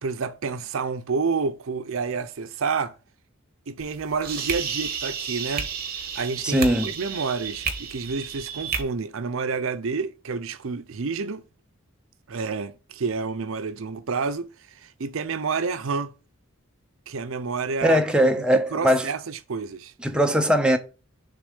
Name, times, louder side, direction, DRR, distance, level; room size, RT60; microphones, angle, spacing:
voice 1, 0.0-2.9 3.7-5.7 6.1-11.4 12.3-16.1 17.1-18.4 18.7-19.9, right 5 dB, 65° right, 0.5 m, -29 dB
sound 1, 3.8-8.8, right 6 dB, 45° right, 1.1 m, -32 dB
voice 2, 6.4-6.9 17.8-19.1 20.0-20.8, equal, 5° right, 0.5 m, -20 dB
6.7 x 3.6 x 5.2 m
head